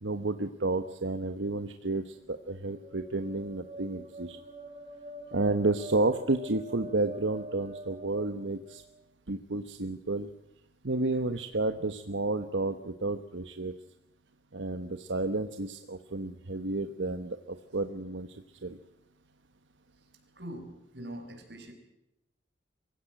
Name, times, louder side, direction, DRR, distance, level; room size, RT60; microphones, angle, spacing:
voice 1, 0.0-4.4 5.3-8.8 9.3-10.3 10.8-13.7 14.5-18.8, right 2 dB, 85° right, 8 dB, 1.1 m, -31 dB
sound 1, 2.2-9.0, right 1 dB, 35° right, 3.6 m, -46 dB
voice 2, 20.3-21.7, right 1 dB, 60° right, 5 dB, 5.2 m, -43 dB
24.0 x 16.0 x 9.0 m, 0.88 s
head